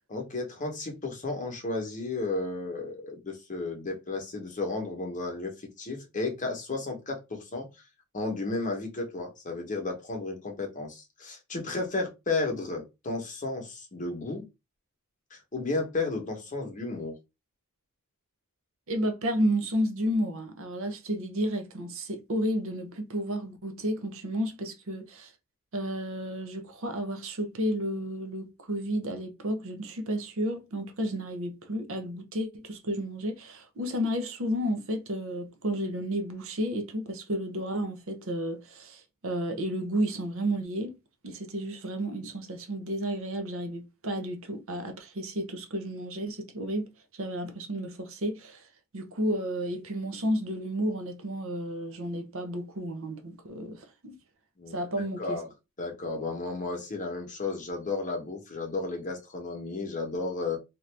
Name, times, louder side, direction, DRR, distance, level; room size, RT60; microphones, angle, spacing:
voice 1, 0.1-7.7 8.1-14.4 15.3-17.1 54.6-55.5 55.8-60.6, left 3 dB, 35° left, 0.9 m, -33 dB
voice 2, 18.9-25.3 25.7-40.9 41.2-46.9 47.1-48.7 48.9-54.1 54.7-55.4, equal, 65° right, 0.7 m, -32 dB
2.9 x 2.5 x 3.3 m
head